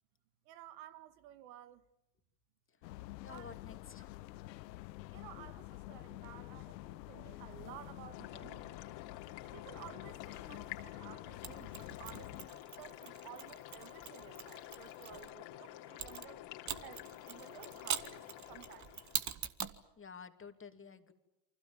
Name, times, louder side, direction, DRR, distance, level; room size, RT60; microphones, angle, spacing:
voice 1, 0.5-1.8 3.3-3.6 5.1-8.9 9.5-16.4 16.8-19.0, right 13 dB, 75° right, 2.0 m, -54 dB
sound 1, 2.8-12.5, left 18 dB, 90° left, 0.9 m, -49 dB
voice 2, 3.2-4.2 20.0-21.1, left 5 dB, 25° left, 2.8 m, -51 dB
sound 2, 8.1-19.3, left 14 dB, 70° left, 3.3 m, -50 dB
Mechanisms, 11.4-15.3 16.0-19.8, right 8 dB, 35° right, 1.9 m, -43 dB
29.0 x 25.0 x 7.4 m
supercardioid pair, 90°, 49 cm